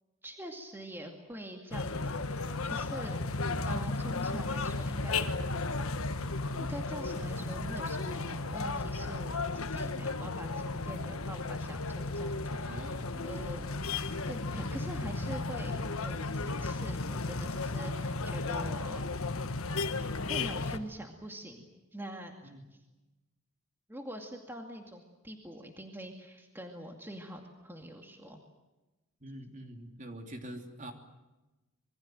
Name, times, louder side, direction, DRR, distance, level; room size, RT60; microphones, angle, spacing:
voice 1, 0.2-3.2 3.6-5.5 6.6-13.0 13.2-13.7 14.3-19.1 20.3-22.3 22.7-22.8 23.9-28.4, right 1 dB, 10° right, 3 dB, 2.3 m, -44 dB
sound 1, 1.7-20.8, left 3 dB, 70° left, 1.5 m, -34 dB
voice 2, 12.7-13.4 22.4-22.7 29.2-30.9, right 1 dB, 35° right, 4 dB, 3.1 m, -45 dB
26.5 x 23.0 x 7.7 m, 1.1 s
head